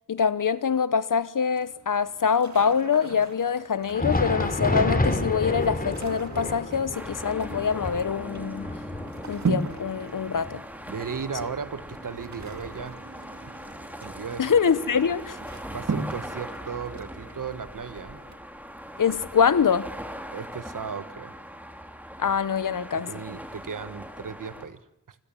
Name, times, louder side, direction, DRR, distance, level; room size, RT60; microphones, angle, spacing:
voice 1, 0.1-8.7 9.3-10.6 14.4-15.4 19.0-19.9 22.2-23.1, left 6 dB, 85° left, 1.1 m, -24 dB
sound 1, 1.5-18.4, right 4 dB, 60° right, 2.3 m, -39 dB
Thunder, 3.8-13.2 13.6-13.7 14.4-14.6 15.6-15.7, left 2 dB, 30° left, 3.3 m, -31 dB
sound 2, 6.9-24.7, equal, 5° right, 3.0 m, -41 dB
voice 2, 10.9-13.0 14.0-14.6 15.7-18.2 20.3-21.4 22.9-24.8 25.1-25.2, right 6 dB, 85° right, 1.4 m, -36 dB
27.0 x 21.0 x 7.2 m
wide cardioid pair, 70°, 31 cm